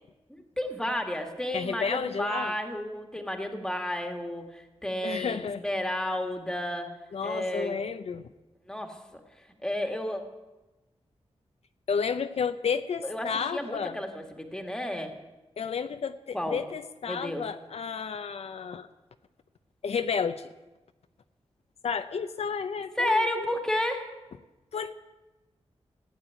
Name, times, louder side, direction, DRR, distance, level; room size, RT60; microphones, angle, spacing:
voice 1, 0.6-6.9 7.2-7.8 8.7-9.2 9.6-10.2 13.0-15.1 16.3-16.6 17.1-17.4 23.0-24.1, left 1 dB, 5° left, 4 dB, 1.7 m, -31 dB
voice 2, 1.5-2.5 5.0-5.6 7.1-8.3 11.9-14.0 15.6-18.9 19.8-20.5 21.8-23.5 24.7-24.9, left 6 dB, 70° left, 9 dB, 0.6 m, -31 dB
15.5 x 9.6 x 9.1 m, 1.1 s
wide cardioid pair, 170°, 11 cm